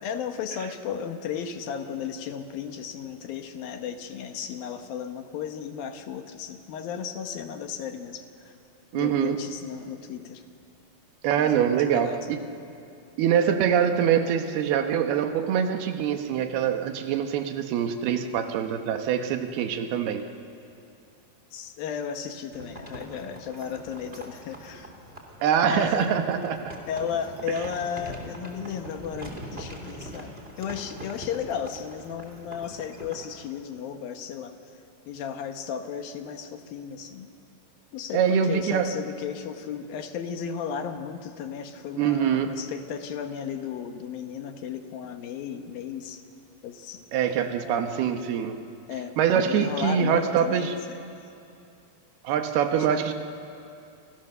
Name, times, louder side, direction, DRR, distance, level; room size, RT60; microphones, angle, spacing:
voice 1, 0.0-8.5 8.9-10.4 11.3-12.4 21.5-24.9 25.6-26.1 26.9-34.5 35.1-37.3 37.9-46.2 46.6-47.0 47.6-47.9 48.9-51.0 52.7-53.0, left 7 dB, 70° left, 6 dB, 2.7 m, -34 dB
voice 2, 8.9-9.4 11.2-12.4 13.2-20.3 25.4-26.7 38.1-38.9 42.0-42.6 47.1-48.6 49.2-50.7 52.2-53.1, right 8 dB, 75° right, 6 dB, 3.0 m, -24 dB
sound 1, 22.5-33.3, right 1 dB, 15° right, 2.5 m, -42 dB
29.5 x 26.5 x 6.8 m, 2.6 s
omnidirectional pair, 4.8 m